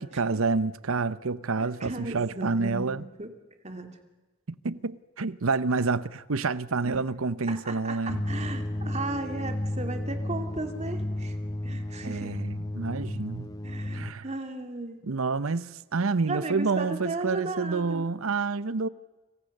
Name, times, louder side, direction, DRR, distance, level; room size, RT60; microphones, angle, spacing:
voice 1, 0.0-3.0 4.5-8.2 12.0-13.5 13.9-14.2 15.0-18.9, right 4 dB, 70° right, 0.8 m, -28 dB
voice 2, 1.6-3.3 3.6-4.0 6.8-7.1 7.5-11.4 11.6-12.3 13.6-15.0 16.2-18.0, right 2 dB, 30° right, 2.4 m, -36 dB
sound 1, 8.1-14.1, left 1 dB, 20° left, 0.8 m, -33 dB
30.0 x 27.0 x 6.6 m
head